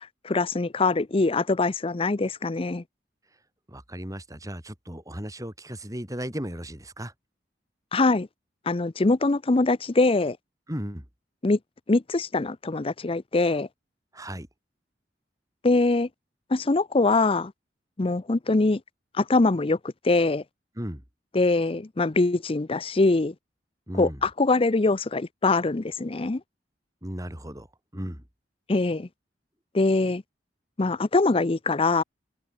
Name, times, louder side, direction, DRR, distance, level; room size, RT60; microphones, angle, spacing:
voice 1, 0.0-2.8 7.9-8.3 8.7-10.4 11.4-11.6 11.9-13.7 15.6-16.1 16.5-17.5 18.0-18.8 19.2-19.8 20.0-20.4 21.3-23.3 23.9-26.4 28.7-29.1 29.7-30.2 30.8-32.0, left 3 dB, 30° left, 0.6 m, -23 dB
voice 2, 3.7-7.1 10.7-11.0 14.1-14.5 20.8-21.0 23.9-24.2 27.0-27.7 27.9-28.2, equal, 20° right, 6.3 m, -35 dB
head